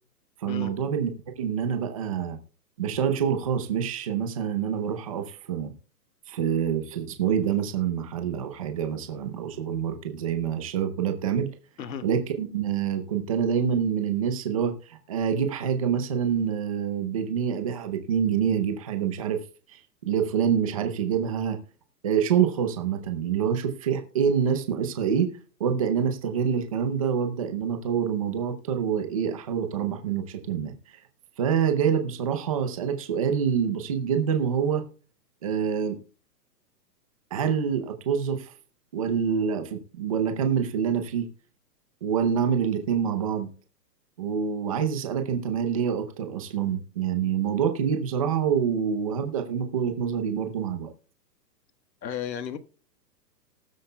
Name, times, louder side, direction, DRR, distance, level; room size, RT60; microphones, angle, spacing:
voice 1, 0.4-1.1 1.4-2.4 2.8-5.7 6.3-11.5 12.0-19.4 20.1-21.6 22.0-25.3 25.6-30.7 31.4-34.8 35.4-36.0 37.3-38.5 38.9-41.3 42.0-43.5 44.2-50.9, right 7 dB, 20° right, 0.6 m, -26 dB
voice 2, 52.0-52.6, left 8 dB, 90° left, 1.5 m, -33 dB
19.5 x 7.8 x 2.2 m
hypercardioid pair, 170°, 50 cm